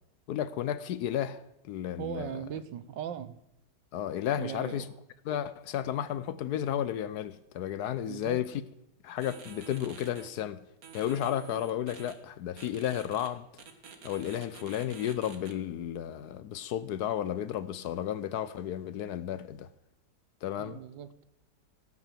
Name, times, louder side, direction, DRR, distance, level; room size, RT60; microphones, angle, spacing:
voice 1, 0.3-1.4 1.6-2.4 3.9-4.8 5.3-8.5 9.0-10.6 10.9-13.5 14.0-19.7 20.4-20.8, left 10 dB, 70° left, 1.1 m, -33 dB
voice 2, 2.0-3.4 4.4-4.9 8.0-8.4 20.6-21.2, right 9 dB, 80° right, 1.5 m, -39 dB
sound 1, 9.2-10.3 10.8-12.1 12.6-13.3 13.6-15.5, right 6 dB, 55° right, 1.7 m, -49 dB
17.0 x 6.1 x 7.4 m
omnidirectional pair, 1.9 m